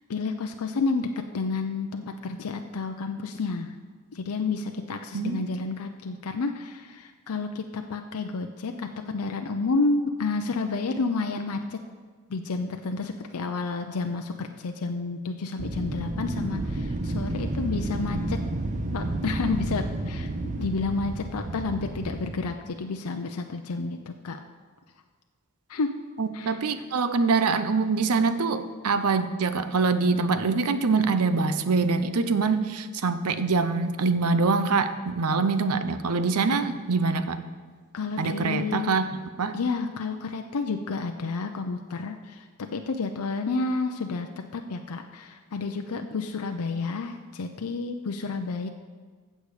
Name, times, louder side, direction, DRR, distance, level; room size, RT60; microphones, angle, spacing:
voice 1, 0.1-1.1 1.3-3.7 4.1-11.8 12.3-18.4 18.9-24.4 25.7-25.9 26.3-26.6 37.9-39.0 39.5-42.5 42.7-48.7, left 4 dB, 80° left, 5 dB, 0.6 m, -30 dB
voice 2, 5.1-5.5 26.2-37.4 38.2-39.1 39.4-39.6, right 4 dB, 85° right, 11 dB, 0.7 m, -24 dB
Wind, 15.6-22.5, right 2 dB, 35° right, 0.7 m, -31 dB
15.0 x 6.6 x 4.9 m, 1.5 s
head